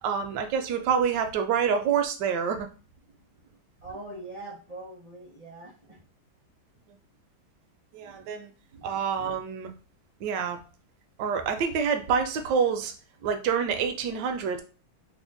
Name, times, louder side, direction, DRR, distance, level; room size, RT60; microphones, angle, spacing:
voice 1, 0.0-2.7 7.9-8.5 8.8-9.7 10.2-10.6 11.2-12.9 13.2-14.6, right 6 dB, 70° right, 6 dB, 1.1 m, -27 dB
voice 2, 3.8-6.1 8.8-8.9, right 2 dB, 40° right, -5 dB, 0.5 m, -42 dB
3.3 x 2.1 x 3.8 m, 0.36 s
omnidirectional pair, 2.1 m